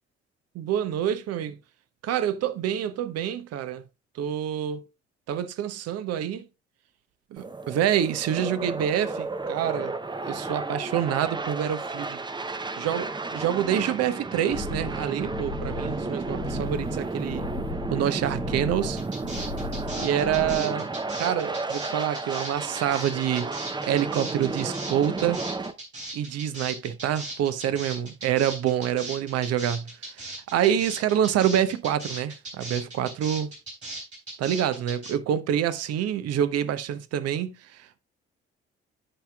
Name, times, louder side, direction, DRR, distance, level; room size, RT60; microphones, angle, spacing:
voice 1, 0.5-1.6 2.0-3.8 4.2-4.8 5.3-6.4 7.3-9.9 10.3-12.2 12.8-17.5 17.9-19.0 20.0-20.9 21.2-25.4 26.1-33.5 34.4-38.0, right 10 dB, 50° right, 0.9 m, -27 dB
sound 1, 7.4-25.7, right 3 dB, 15° right, 0.7 m, -33 dB
sound 2, 14.5-20.6, left 5 dB, 65° left, 0.6 m, -37 dB
sound 3, 19.0-35.1, right 2 dB, 85° right, 3.9 m, -38 dB
15.5 x 5.8 x 2.3 m
figure-of-eight pair, 45°, 31 cm